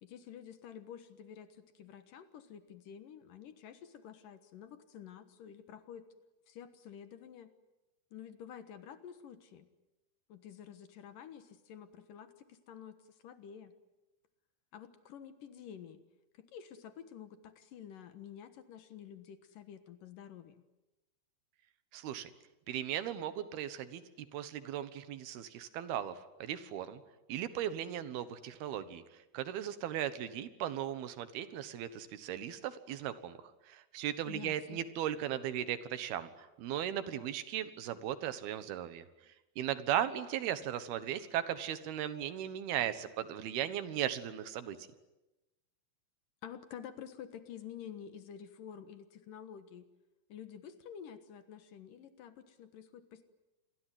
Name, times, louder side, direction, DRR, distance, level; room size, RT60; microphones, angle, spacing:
voice 1, 0.0-6.1 6.5-7.5 8.1-9.7 10.3-13.0 13.2-13.7 14.7-16.0 16.5-20.6 34.3-34.8 46.4-49.9 50.3-53.3, left 8 dB, 65° left, 10 dB, 2.8 m, -50 dB
voice 2, 21.9-22.3 22.7-24.0 24.3-27.0 27.3-29.0 29.3-33.4 33.7-39.0 39.6-44.8, right 11 dB, 80° right, 12 dB, 3.3 m, -37 dB
28.0 x 22.0 x 9.3 m, 1.0 s
omnidirectional pair, 4.5 m